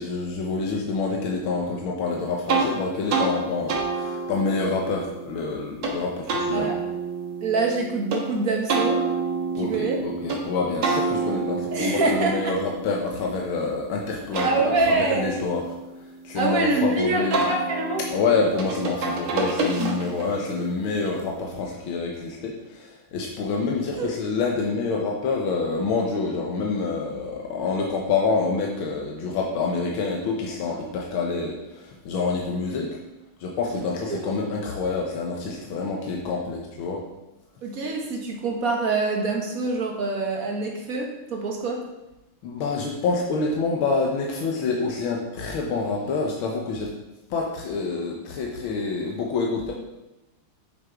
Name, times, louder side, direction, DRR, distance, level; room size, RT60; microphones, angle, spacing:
voice 1, 0.0-6.7 9.6-14.5 14.9-15.6 16.2-17.4 18.1-33.0 33.4-37.0 42.4-47.0 47.3-49.7, left 4 dB, 90° left, -1 dB, 1.8 m, -27 dB
sound 1, 2.5-2.7 3.1-3.3 3.7-5.9 6.3-8.2 8.7-10.4 10.8-13.7 14.1-16.8 17.3-20.3, right 3 dB, 90° right, 2.2 m, -28 dB
voice 2, 7.4-9.0 9.5-10.0 11.7-12.5 14.4-15.3 16.3-18.0 24.0-24.1 34.1-34.2 37.6-41.8, right 3 dB, 45° right, 0 dB, 1.7 m, -25 dB
7.9 x 6.2 x 4.7 m, 0.97 s
omnidirectional pair, 2.2 m